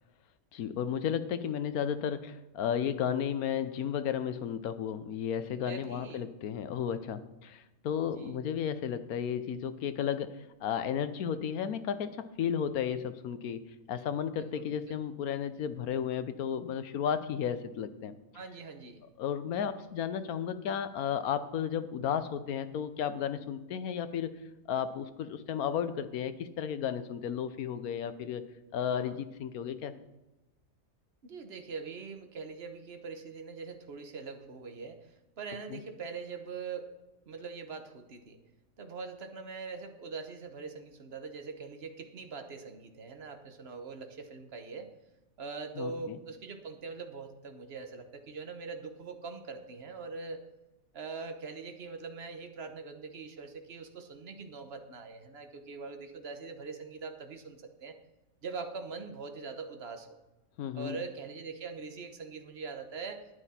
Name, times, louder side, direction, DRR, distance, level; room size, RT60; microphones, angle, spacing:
voice 1, 0.5-13.6 13.9-18.2 19.2-24.4 24.7-28.4 28.7-29.9 35.7-35.8 45.8-46.2 60.6-61.0, left 8 dB, 90° left, 12 dB, 1.2 m, -33 dB
voice 2, 5.5-6.3 8.1-8.4 14.4-15.0 18.3-19.0 28.9-29.2 31.2-36.9 37.3-38.4 38.8-44.9 45.4-50.4 50.9-58.0 58.4-60.2 60.7-63.3, right 4 dB, 50° right, 6 dB, 1.3 m, -42 dB
12.0 x 10.0 x 4.3 m, 1.0 s
omnidirectional pair, 1.5 m